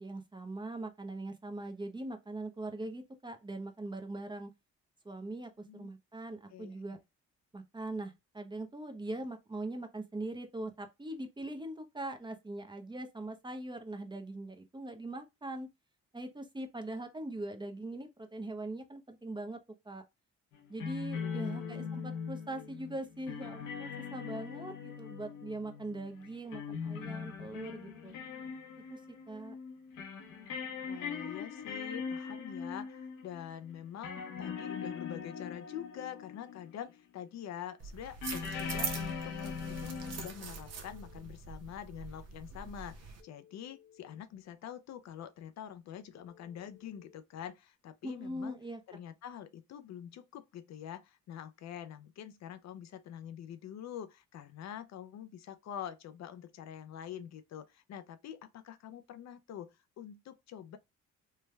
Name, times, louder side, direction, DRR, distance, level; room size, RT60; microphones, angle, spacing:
voice 1, 0.0-4.5 5.0-7.0 7.5-15.7 16.1-19.6 19.8-20.0 20.7-28.1 28.9-29.0 29.3-29.5 48.0-48.8, right 2 dB, 15° right, 0.7 m, -41 dB
sound 1, 20.5-36.9 38.2-40.3, left 6 dB, 80° left, 0.8 m, -41 dB
voice 2, 21.2-21.9 30.9-48.6 48.9-59.7 60.0-60.8, left 9 dB, 60° left, 0.5 m, -46 dB
sound 2, 37.8-43.2, right 5 dB, 55° right, 0.8 m, -43 dB
Telephone, 40.2-41.3 43.2-44.2 46.1-47.2, left 9 dB, 20° left, 1.0 m, -61 dB
3.3 x 2.2 x 3.1 m
cardioid pair, 90°, 30 cm